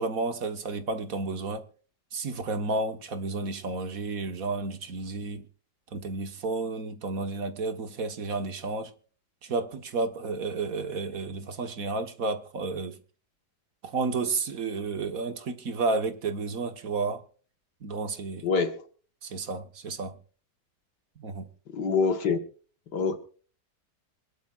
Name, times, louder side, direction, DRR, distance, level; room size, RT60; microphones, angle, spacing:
voice 1, 0.0-1.6 2.1-5.5 5.9-8.9 9.4-13.0 13.8-17.2 17.8-18.5 19.2-20.2 21.2-21.5, right 3 dB, 55° right, 1.9 m, -31 dB
voice 2, 18.4-18.8 21.7-22.4 22.9-23.2, left 5 dB, 85° left, 2.2 m, -25 dB
26.5 x 11.5 x 2.5 m
omnidirectional pair, 1.8 m